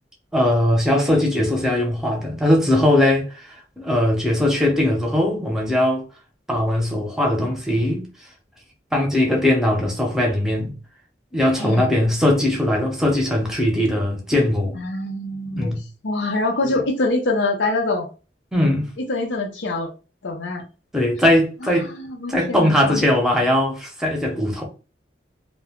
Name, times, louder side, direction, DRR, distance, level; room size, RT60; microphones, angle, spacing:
voice 1, 0.3-3.3 3.8-6.0 6.5-8.1 8.9-10.7 11.3-14.8 15.6-15.8 16.6-16.8 18.5-18.9 20.9-21.9 22.3-24.6, left 1 dB, 5° right, 0.7 m, -20 dB
voice 2, 11.6-12.0 14.8-15.7 16.0-18.1 19.1-19.9 20.2-20.6 21.6-23.0, left 2 dB, 90° left, 0.6 m, -25 dB
2.4 x 2.2 x 3.5 m
head